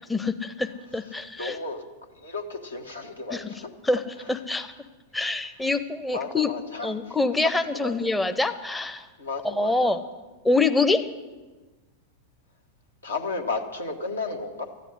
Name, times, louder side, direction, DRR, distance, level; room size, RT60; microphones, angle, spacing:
voice 1, 0.1-1.6 3.3-3.5 3.8-4.0 4.3-4.7 5.1-6.5 6.8-9.1 9.4-10.0 10.4-11.1, left 3 dB, 5° left, 8 dB, 0.6 m, -25 dB
voice 2, 1.4-1.8 2.2-3.7 6.1-7.2 7.7-8.0 9.2-9.9 13.0-14.7, left 3 dB, 75° left, 4 dB, 1.5 m, -33 dB
13.5 x 9.2 x 9.8 m, 1.3 s
figure-of-eight pair, 90°, 0 cm